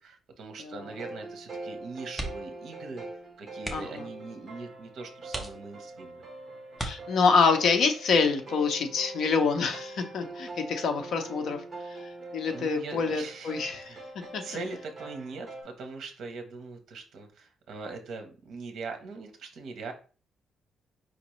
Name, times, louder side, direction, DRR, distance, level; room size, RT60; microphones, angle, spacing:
voice 1, 0.0-3.0 3.4-6.2 12.5-19.9, right 4 dB, 60° right, 5 dB, 0.8 m, -41 dB
sound 1, 0.8-15.6, right 2 dB, 25° right, 1.1 m, -43 dB
sound 2, 2.1-2.6 2.9-3.1 3.6-4.1 4.7-4.8 5.3-6.0 6.7-7.5 9.1-9.4 9.8-9.9, right 1 dB, ahead, 0.6 m, -38 dB
voice 2, 3.7-4.1 6.8-14.0 14.3-14.4, left 5 dB, 55° left, 6 dB, 0.7 m, -26 dB
5.0 x 2.9 x 3.0 m, 0.39 s
cardioid pair, 180°, 0 cm